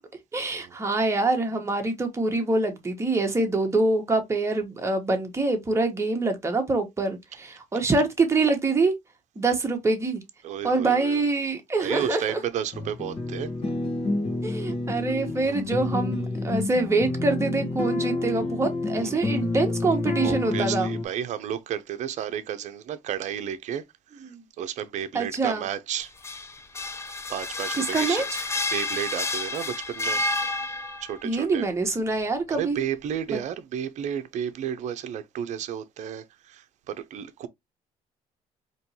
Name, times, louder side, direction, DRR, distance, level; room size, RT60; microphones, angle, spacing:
voice 1, 0.3-8.9 9.4-10.2 10.6-12.4 14.4-20.9 24.3-24.4 25.1-25.7 27.8-28.4 31.2-32.8 33.3-33.4, right 3 dB, 20° right, 1.2 m, -25 dB
voice 2, 10.4-11.2 11.8-13.5 14.9-15.0 15.5-15.6 18.9-19.3 20.2-23.8 24.1-26.1 27.3-28.2 28.7-30.2 31.0-31.7 32.5-37.5, right 9 dB, 60° right, 0.7 m, -32 dB
sound 1, 12.7-21.0, left 2 dB, 40° left, 1.3 m, -29 dB
sound 2, 26.0-31.2, left 2 dB, 20° left, 0.6 m, -30 dB
4.3 x 3.1 x 2.8 m
cardioid pair, 120°, 14 cm